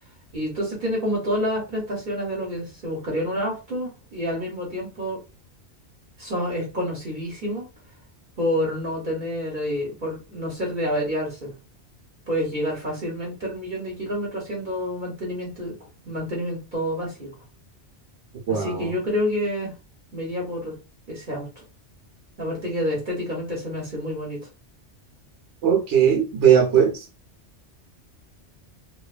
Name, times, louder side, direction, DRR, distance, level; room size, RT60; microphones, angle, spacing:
voice 1, 0.3-5.2 6.2-7.7 8.4-11.5 12.3-15.8 16.0-17.3 18.5-19.7 20.1-20.7 21.1-21.5 22.4-24.5, equal, 45° right, 0.9 m, -28 dB
voice 2, 18.5-18.9 25.6-27.0, right 8 dB, 75° right, 1.0 m, -19 dB
2.6 x 2.2 x 2.4 m
omnidirectional pair, 1.2 m